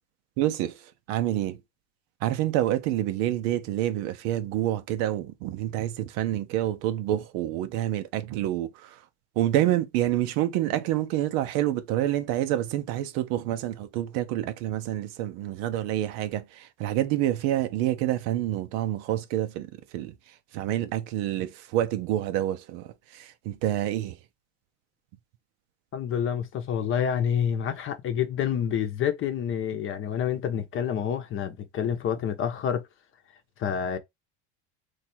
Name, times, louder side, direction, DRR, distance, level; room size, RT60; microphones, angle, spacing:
voice 1, 0.4-1.6 2.2-9.0 9.4-20.1 20.5-24.2, right 13 dB, 70° right, 0.7 m, -28 dB
voice 2, 25.9-32.8 33.6-34.0, left 8 dB, 40° left, 0.8 m, -28 dB
3.2 x 2.4 x 4.3 m
supercardioid pair, 120°, 33 cm